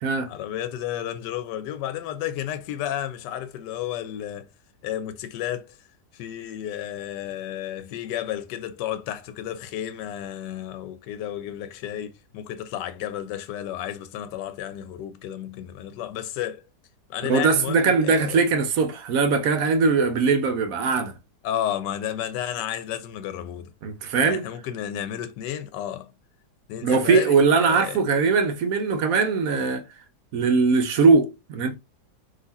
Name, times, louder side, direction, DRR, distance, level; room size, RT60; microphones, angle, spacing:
voice 1, 0.3-4.5 4.8-5.8 6.1-16.6 17.1-18.4 21.4-23.7 24.2-26.1 26.7-28.0, left 11 dB, 90° left, 1.2 m, -32 dB
voice 2, 17.2-21.1 23.8-24.4 26.8-29.8 30.3-31.8, right 4 dB, 70° right, 0.9 m, -21 dB
4.0 x 2.8 x 4.0 m
omnidirectional pair, 1.8 m